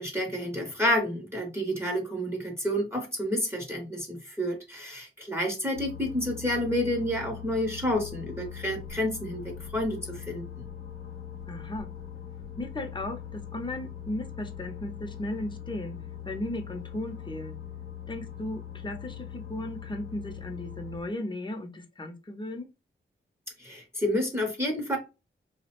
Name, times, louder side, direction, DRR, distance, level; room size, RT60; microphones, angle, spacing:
voice 1, 0.0-10.6 23.6-25.0, equal, 10° right, 0.7 m, -29 dB
sound 1, 5.7-21.0, left 9 dB, 90° left, 0.6 m, -41 dB
voice 2, 11.5-11.9 12.6-15.9 16.3-17.6 18.1-22.7, left 1 dB, 25° left, 0.6 m, -36 dB
2.4 x 2.0 x 2.8 m
cardioid pair, 50°, 21 cm